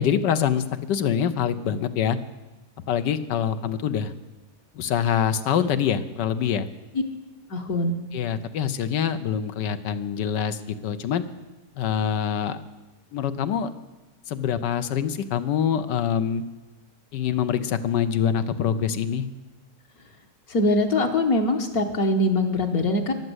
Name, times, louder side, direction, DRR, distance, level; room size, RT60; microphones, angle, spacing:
voice 1, 0.0-2.2 2.9-4.1 4.7-6.7 8.1-11.2 11.8-12.6 13.1-13.7 14.3-16.4 17.1-19.3, left 8 dB, 80° left, 11 dB, 1.4 m, -25 dB
voice 2, 7.5-8.0 20.5-23.1, left 2 dB, 60° left, 2 dB, 1.6 m, -22 dB
14.5 x 11.0 x 7.9 m, 1.1 s
omnidirectional pair, 1.9 m